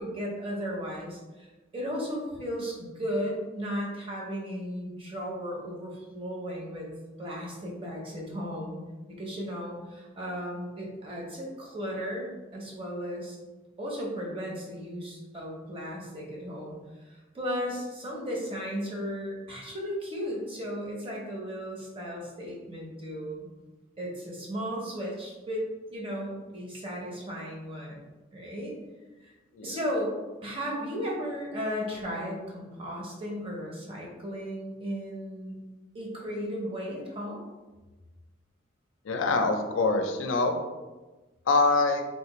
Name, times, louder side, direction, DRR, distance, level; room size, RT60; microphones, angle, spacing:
voice 1, 0.0-8.8 9.2-12.3 12.5-13.4 13.8-16.8 17.0-23.5 24.0-25.6 25.9-28.0 28.3-28.8 29.2-29.3 29.6-30.2 30.4-35.6 35.9-37.4, equal, 30° right, -2 dB, 0.7 m, -35 dB
voice 2, 39.0-40.6 41.5-42.0, left 3 dB, 85° left, 5 dB, 0.4 m, -24 dB
3.5 x 2.4 x 2.9 m, 1.2 s
head